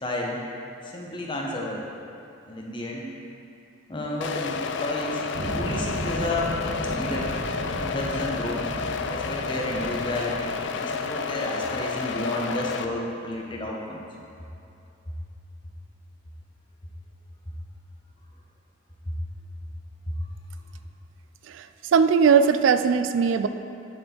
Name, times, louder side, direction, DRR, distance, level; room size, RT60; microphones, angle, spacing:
voice 1, 0.0-0.4 0.8-1.8 2.5-3.1 3.9-5.2 5.5-7.3 7.8-8.7 9.1-14.0 19.1-19.2, left 1 dB, 25° left, -2 dB, 0.9 m, -31 dB
sound 1, 4.2-12.8, left 5 dB, 70° left, 0.4 m, -30 dB
sound 2, 5.3-11.2, right 1 dB, 40° right, 0.6 m, -35 dB
voice 2, 21.9-23.5, right 6 dB, 90° right, 11 dB, 0.3 m, -19 dB
9.6 x 4.5 x 4.4 m, 2.7 s
head